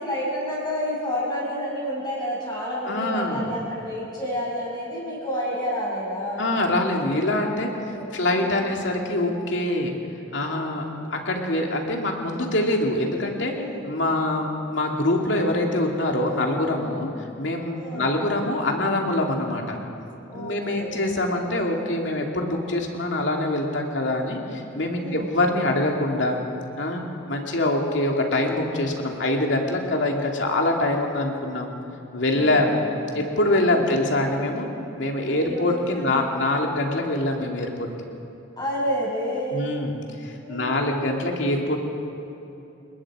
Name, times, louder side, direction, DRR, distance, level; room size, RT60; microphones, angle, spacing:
voice 1, 0.0-6.6 7.6-8.7 13.5-13.9 17.7-18.1 20.3-21.0 25.0-25.3 32.3-32.6 33.1-33.2 33.7-34.0 35.2-35.7 35.9-36.2 38.6-39.6 40.4-41.0, equal, 20° left, -6 dB, 7.0 m, -30 dB
voice 2, 2.9-3.5 6.4-7.7 8.1-10.0 10.3-13.5 13.8-17.1 17.4-19.8 20.3-26.4 26.8-27.0 27.3-31.7 32.1-32.9 33.1-34.7 35.0-37.9 39.5-40.0 40.2-41.8, left 1 dB, 70° left, 1 dB, 2.6 m, -24 dB
29.5 x 19.5 x 4.9 m, 2.9 s
head